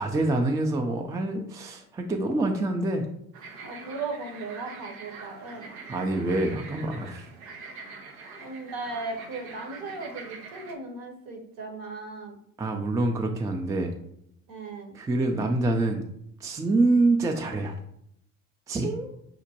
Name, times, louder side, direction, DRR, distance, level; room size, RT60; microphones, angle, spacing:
voice 1, 0.0-3.1 5.9-7.3 12.6-13.9 14.9-16.1 16.4-17.7 18.7-19.1, right 2 dB, 10° right, 3 dB, 0.4 m, -26 dB
sound 1, 3.3-10.7, right 4 dB, 85° right, 0.6 m, -44 dB
voice 2, 3.6-5.7 8.3-12.4 14.5-14.9, right 3 dB, 55° right, 3 dB, 1.0 m, -37 dB
5.9 x 2.1 x 2.8 m, 0.73 s
hypercardioid pair, 60°, 42 cm